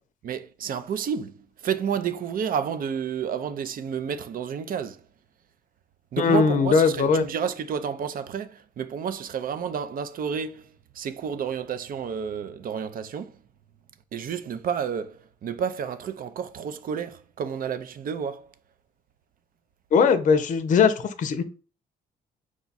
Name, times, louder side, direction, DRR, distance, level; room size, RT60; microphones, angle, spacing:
voice 1, 0.2-1.3 1.6-5.0 6.1-10.7 11.0-13.3 14.1-18.5, right 7 dB, 55° right, 0.5 m, -30 dB
voice 2, 6.2-7.2 19.9-21.4, left 5 dB, 50° left, 0.5 m, -20 dB
4.8 x 2.3 x 4.0 m
cardioid pair, 90°, 17 cm